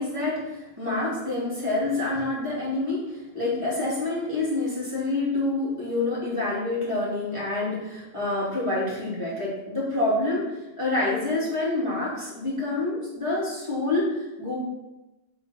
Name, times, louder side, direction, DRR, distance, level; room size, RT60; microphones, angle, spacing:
voice 1, 0.0-14.5, left 2 dB, 25° right, -7 dB, 2.6 m, -27 dB
7.5 x 3.9 x 4.2 m, 1.0 s
omnidirectional pair, 1.2 m